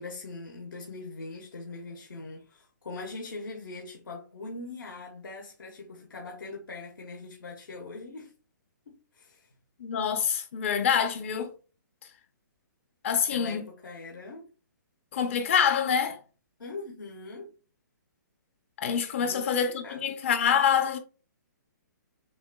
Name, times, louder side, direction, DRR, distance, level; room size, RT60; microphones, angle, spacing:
voice 1, 0.0-8.3 8.9-9.5 13.1-14.5 16.6-17.6 19.2-20.2, left 3 dB, 85° left, 1.3 m, -42 dB
voice 2, 9.8-11.5 13.0-13.6 15.1-16.2 18.8-21.0, left 7 dB, 40° left, 0.6 m, -26 dB
6.9 x 2.6 x 2.3 m
hypercardioid pair, 160°, 11 cm